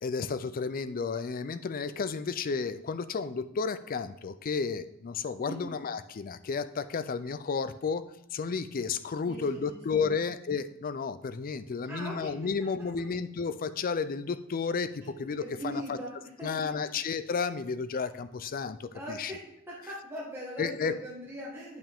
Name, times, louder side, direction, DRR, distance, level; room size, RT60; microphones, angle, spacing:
voice 1, 0.0-8.0 8.3-16.0 16.4-19.3 20.6-20.9, left 5 dB, 40° left, 13 dB, 0.4 m, -32 dB
voice 2, 5.3-5.7 9.2-10.2 11.9-12.3 15.0-16.7 18.9-19.4 19.7-21.8, equal, 10° right, -6 dB, 1.5 m, -41 dB
8.9 x 5.7 x 3.5 m, 0.80 s
head